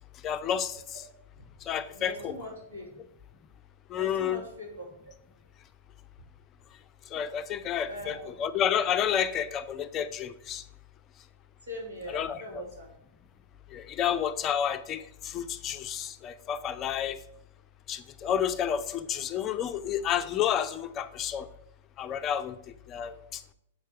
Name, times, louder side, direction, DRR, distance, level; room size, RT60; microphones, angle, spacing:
voice 1, 0.2-1.0 1.6-2.3 3.9-4.4 7.1-10.6 12.1-12.6 13.7-17.2 17.9-21.5 22.0-22.6 22.9-23.4, left 9 dB, 30° left, 12 dB, 0.5 m, -30 dB
voice 2, 1.9-2.9 3.9-4.9 7.9-8.3 11.6-12.9, equal, 75° right, -1 dB, 2.7 m, -41 dB
7.5 x 4.5 x 4.7 m, 0.76 s
figure-of-eight pair, 105°, 0 cm